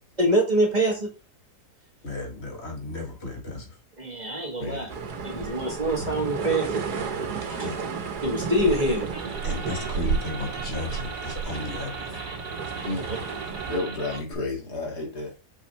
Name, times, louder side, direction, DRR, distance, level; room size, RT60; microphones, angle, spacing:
voice 1, 0.2-1.1 4.0-4.9 5.2-6.8 7.5-7.7 8.2-9.1 13.1-13.2, right 1 dB, 30° right, 1.8 m, -25 dB
voice 2, 2.0-3.8 7.6-7.8 9.4-12.2, left 2 dB, 40° left, 2.2 m, -35 dB
voice 3, 4.6-4.9 12.8-13.1 13.7-15.3, left 2 dB, 90° left, 2.9 m, -31 dB
sound 1, 4.9-13.8, right 5 dB, 80° right, 1.7 m, -32 dB
sound 2, 9.0-14.3, right 4 dB, 50° right, 2.6 m, -37 dB
6.3 x 5.6 x 3.4 m
omnidirectional pair, 1.7 m